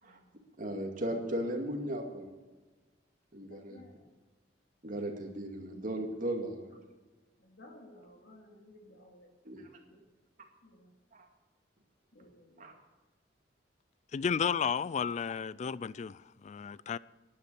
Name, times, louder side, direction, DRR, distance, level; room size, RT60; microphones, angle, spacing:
voice 1, 0.0-0.4 3.5-4.0 7.4-9.3 9.9-10.0 10.6-10.9 12.1-12.7, left 1 dB, 70° left, 2.6 m, -56 dB
voice 2, 0.6-2.3 3.3-3.8 4.8-6.7 9.4-9.7 11.1-11.3 12.6-12.7, right 1 dB, 50° right, 2.4 m, -36 dB
voice 3, 14.1-17.0, left 6 dB, 40° left, 0.3 m, -33 dB
11.5 x 9.7 x 8.5 m
head